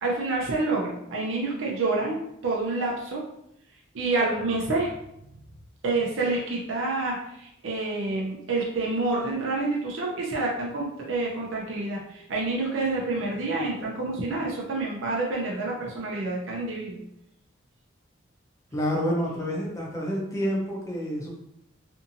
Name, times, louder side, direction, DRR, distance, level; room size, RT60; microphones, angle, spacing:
voice 1, 0.0-3.2 3.9-4.9 5.8-17.0, right 3 dB, 75° right, -3 dB, 0.5 m, -28 dB
voice 2, 18.7-21.3, equal, 15° left, -3 dB, 0.5 m, -28 dB
2.6 x 2.5 x 2.7 m, 0.79 s
head